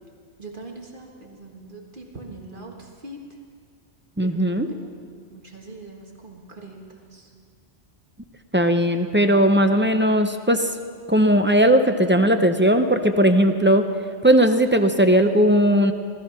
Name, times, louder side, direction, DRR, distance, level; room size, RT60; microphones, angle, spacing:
voice 1, 0.4-3.2 4.2-7.3, right 2 dB, 45° right, 1 dB, 1.8 m, -42 dB
voice 2, 4.2-4.7 8.5-10.7 11.1-13.8 14.2-15.9, equal, 15° right, 6 dB, 0.4 m, -18 dB
18.5 x 13.5 x 5.7 m, 2.1 s
omnidirectional pair, 1.3 m